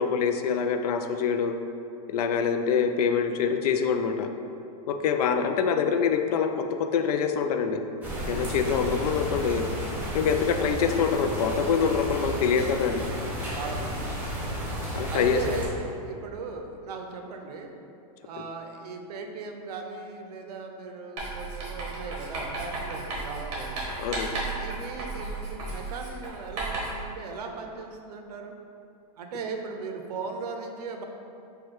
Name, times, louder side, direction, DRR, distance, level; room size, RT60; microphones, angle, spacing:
voice 1, 0.0-1.6 2.1-4.3 4.9-7.8 8.3-9.7 10.1-13.0 14.9-15.4 24.0-24.3, left 6 dB, 75° left, 7 dB, 0.4 m, -25 dB
voice 2, 2.3-2.7 13.6-14.1 15.1-17.7 18.2-24.0 24.6-28.5 29.2-31.0, right 4 dB, 85° right, 4 dB, 0.6 m, -37 dB
sound 1, 8.0-15.7, equal, 10° right, 0.6 m, -32 dB
Writing, 21.2-27.1, right 3 dB, 50° right, 1.3 m, -34 dB
4.6 x 2.3 x 4.5 m, 2.7 s
supercardioid pair, 165°, 20 cm